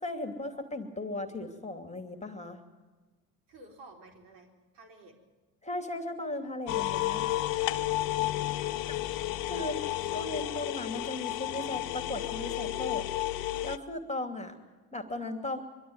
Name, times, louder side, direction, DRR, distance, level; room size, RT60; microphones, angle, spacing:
voice 1, 0.0-2.6 5.6-7.3 8.9-9.0 9.5-9.8 10.1-13.1 13.6-14.6 14.9-15.6, left 2 dB, 15° left, 7 dB, 2.7 m, -37 dB
voice 2, 3.5-5.2 8.6-9.7 9.9-10.5, right 1 dB, 65° right, 2 dB, 4.4 m, -53 dB
sound 1, 6.7-13.8, left 15 dB, 75° left, 0.8 m, -32 dB
24.0 x 12.5 x 9.5 m, 1.3 s
hypercardioid pair, 65°, 44 cm